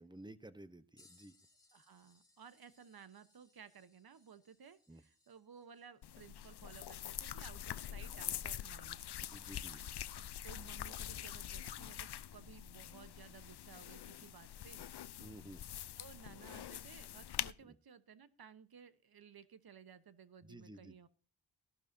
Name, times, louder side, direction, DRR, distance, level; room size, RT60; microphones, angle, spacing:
voice 1, 0.0-1.3 4.9-5.0 9.3-9.8 15.2-15.6 17.6-17.7 20.5-21.0, right 1 dB, 10° right, 13 dB, 0.9 m, -53 dB
sound 1, 1.0-9.2 9.9-10.0 12.3-12.4 13.4-13.6 14.6-14.7, left 2 dB, 10° left, 3.5 m, -72 dB
voice 2, 1.7-9.0 10.4-14.9 16.0-21.1, right 7 dB, 60° right, 13 dB, 1.1 m, -57 dB
sound 2, 6.0-17.5, left 11 dB, 70° left, 0.6 m, -45 dB
15.0 x 12.0 x 2.7 m, 0.38 s
wide cardioid pair, 80°, 41 cm